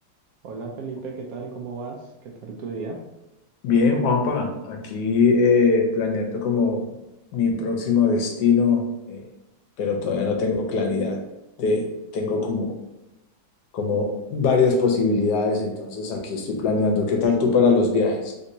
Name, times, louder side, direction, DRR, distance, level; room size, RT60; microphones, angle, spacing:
voice 1, 0.4-2.0 2.4-3.0, right 4 dB, 70° right, 1 dB, 0.9 m, -34 dB
voice 2, 3.6-6.9 7.3-9.2 9.8-11.2 11.6-11.9 12.1-12.8 13.7-18.3, left 4 dB, 75° left, 2 dB, 1.2 m, -21 dB
3.4 x 2.8 x 2.6 m, 0.95 s
omnidirectional pair, 1.9 m